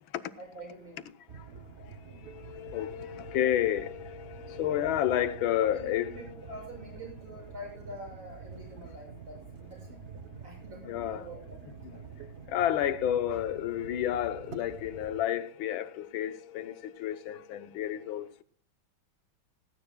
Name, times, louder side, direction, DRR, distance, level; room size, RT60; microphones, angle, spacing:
voice 1, 0.4-1.1 5.6-12.3, equal, 75° right, 8.2 m, -47 dB
sound 1, 1.3-15.2, right 6 dB, 50° right, 0.8 m, -47 dB
voice 2, 2.2-6.5 10.8-11.3 11.8-12.0 12.5-18.4, left 11 dB, 80° left, 1.6 m, -31 dB
17.5 x 16.5 x 2.3 m
omnidirectional pair, 2.2 m